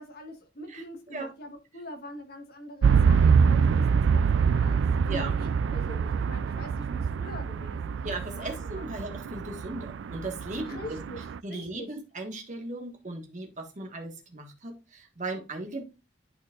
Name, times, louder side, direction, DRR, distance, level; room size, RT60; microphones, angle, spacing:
voice 1, 0.0-8.9 10.6-11.2 11.5-11.9, left 1 dB, 50° left, 4 dB, 1.5 m, -44 dB
voice 2, 0.7-1.3 5.1-5.3 8.0-10.8 11.4-15.8, right 2 dB, 40° right, 2 dB, 1.5 m, -37 dB
sound 1, 2.8-11.4, right 6 dB, 65° right, 0.3 m, -25 dB
11.5 x 4.4 x 2.5 m, 0.27 s
head